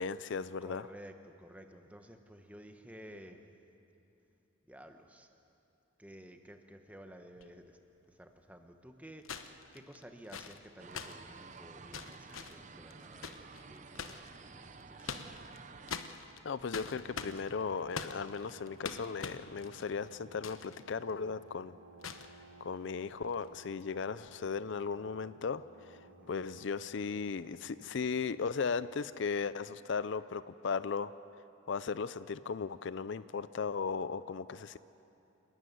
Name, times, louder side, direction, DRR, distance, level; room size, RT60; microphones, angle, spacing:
voice 1, 0.0-0.8 16.4-21.8 22.6-26.0 26.3-31.1 31.7-34.8, left 5 dB, 60° left, 15 dB, 0.4 m, -36 dB
voice 2, 0.6-3.4 4.7-5.3 6.0-7.8 8.1-15.2 26.0-26.3, equal, 5° right, 5 dB, 1.1 m, -53 dB
sound 1, 7.3-7.4 9.2-14.3 14.8-15.6 15.9-20.8 21.1-21.2 22.0-22.3 23.2-23.4, left 6 dB, 85° left, 1.0 m, -44 dB
sound 2, 10.8-15.9, right 4 dB, 35° right, 0.7 m, -52 dB
Brass instrument, 16.8-29.1, right 2 dB, 65° right, 2.6 m, -58 dB
29.0 x 12.5 x 9.4 m, 2.9 s
head